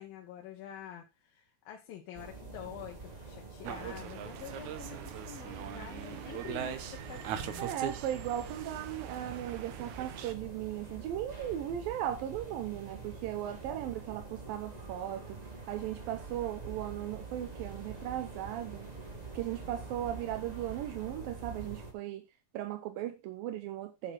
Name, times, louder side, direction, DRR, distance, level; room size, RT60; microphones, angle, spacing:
voice 1, 0.0-7.6, left 9 dB, 85° left, 1 dB, 3.1 m, -47 dB
sound 1, 2.1-21.9, right 4 dB, 15° right, 1.9 m, -46 dB
sound 2, 3.6-10.3, right 9 dB, 70° right, 2.1 m, -41 dB
voice 2, 7.6-15.4 15.7-18.9 19.3-22.2 22.5-24.1, right 12 dB, 85° right, 6 dB, 2.7 m, -37 dB
8.9 x 7.7 x 4.2 m, 0.25 s
omnidirectional pair, 4.0 m